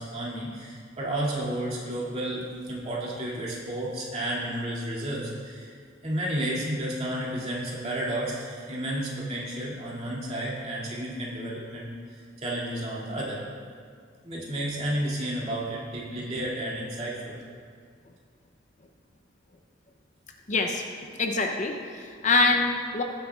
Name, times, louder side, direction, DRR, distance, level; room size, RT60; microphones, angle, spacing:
voice 1, 0.0-5.7 6.0-13.4 14.2-17.4, right 1 dB, 35° right, -6 dB, 2.4 m, -32 dB
voice 2, 20.5-20.8 21.2-23.0, left 3 dB, 40° left, 4 dB, 0.6 m, -25 dB
17.0 x 9.3 x 2.4 m, 2.1 s
head